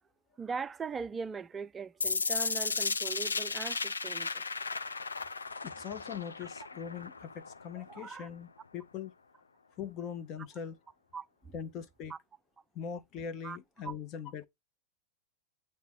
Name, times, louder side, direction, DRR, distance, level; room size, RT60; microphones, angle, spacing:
voice 1, 0.4-4.4 7.8-8.3 11.1-11.3 12.1-12.2 13.4-13.6 13.8-13.9, right 5 dB, 20° right, 0.3 m, -40 dB
sound 1, 2.0-8.0, left 4 dB, 75° left, 0.4 m, -35 dB
voice 2, 5.6-9.1 9.8-10.8 11.5-12.1 12.7-14.5, left 7 dB, 35° left, 0.7 m, -41 dB
9.2 x 3.2 x 3.4 m
figure-of-eight pair, 90°, 0 cm